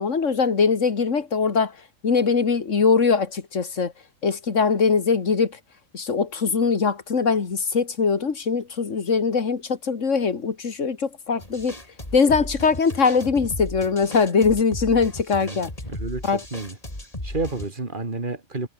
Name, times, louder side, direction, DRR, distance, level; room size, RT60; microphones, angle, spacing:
voice 1, 0.0-1.8 2.0-3.9 4.2-5.6 5.9-11.7 12.1-15.7 16.2-16.4, left 5 dB, 70° left, 2.3 m, -22 dB
sound 1, 11.4-17.7, left 1 dB, 30° left, 5.9 m, -36 dB
voice 2, 15.9-16.8 17.2-18.7, right 3 dB, 40° right, 2.9 m, -30 dB
omnidirectional pair, 1.3 m